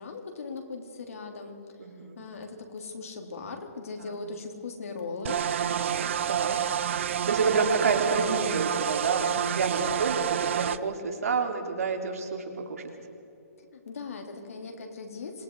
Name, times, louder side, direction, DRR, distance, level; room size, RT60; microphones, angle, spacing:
voice 1, 0.0-1.6 2.2-5.4 13.6-15.4, left 4 dB, 65° left, 3 dB, 3.4 m, -39 dB
voice 2, 1.8-2.2 4.0-4.2 5.6-6.6 7.3-12.8, right 4 dB, 70° right, 3 dB, 3.5 m, -29 dB
sound 1, 5.2-10.8, right 9 dB, 50° right, 0.7 m, -28 dB
26.5 x 20.5 x 4.8 m, 2.9 s
hypercardioid pair, 160°, 8 cm